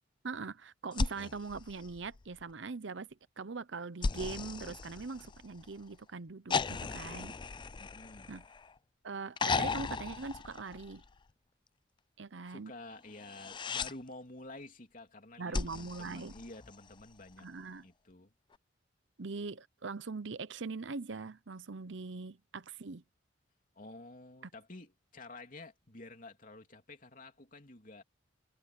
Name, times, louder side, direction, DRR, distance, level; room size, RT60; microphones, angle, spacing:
voice 1, 0.2-7.3 8.3-8.4 9.0-11.0 12.2-12.7 15.4-16.4 17.4-17.9 19.2-23.0, right 4 dB, 70° right, 0.8 m, -42 dB
sound 1, 0.9-2.5 4.0-5.7 6.5-8.8 9.4-11.2 13.2-13.9 15.5-17.0 18.5-18.6, left 4 dB, 25° left, 0.4 m, -37 dB
voice 2, 6.5-7.0 7.8-8.3 12.5-17.5 17.8-18.3 23.7-28.0, left 2 dB, 45° left, 3.3 m, -50 dB
head